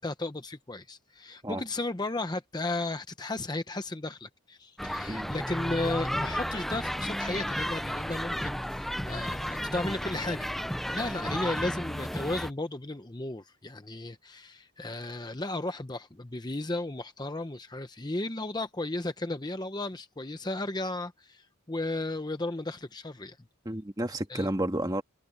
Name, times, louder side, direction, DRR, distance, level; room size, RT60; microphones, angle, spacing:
voice 1, 0.0-10.5 10.8-23.4 24.3-24.5, left 2 dB, 20° left, 0.8 m, -34 dB
sound 1, 4.8-12.5, equal, ahead, 0.3 m, -33 dB
voice 2, 23.6-25.0, right 1 dB, 15° right, 1.5 m, -31 dB
head